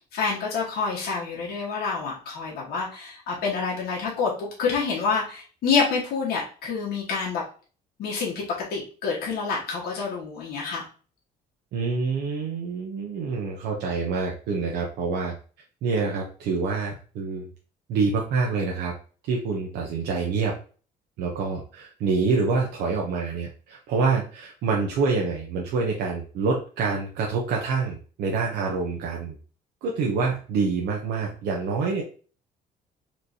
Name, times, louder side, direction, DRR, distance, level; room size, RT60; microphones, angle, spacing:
voice 1, 0.1-7.4 8.0-8.4 8.7-10.8, left 5 dB, 70° left, -4 dB, 1.3 m, -27 dB
voice 2, 11.7-15.3 15.8-17.5 17.9-18.9 19.3-20.5 21.2-29.4 29.8-32.0, right 4 dB, 80° right, -1 dB, 0.8 m, -26 dB
4.3 x 3.1 x 2.7 m, 0.39 s
cardioid pair, 110°, 17 cm